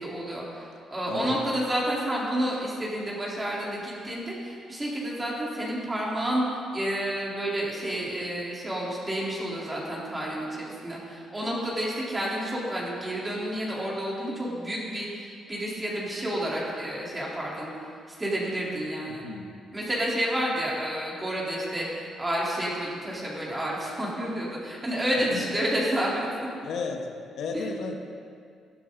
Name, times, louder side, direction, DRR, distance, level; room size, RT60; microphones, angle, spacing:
voice 1, 0.0-19.2 19.7-26.5 27.5-27.7, right 1 dB, 15° right, -5 dB, 3.8 m, -30 dB
voice 2, 1.1-1.4 19.1-19.5 25.3-25.4 26.6-27.1 27.4-28.0, left 5 dB, 75° left, 4 dB, 1.4 m, -33 dB
15.5 x 12.0 x 4.0 m, 2.3 s
cardioid pair, 90°, 0 cm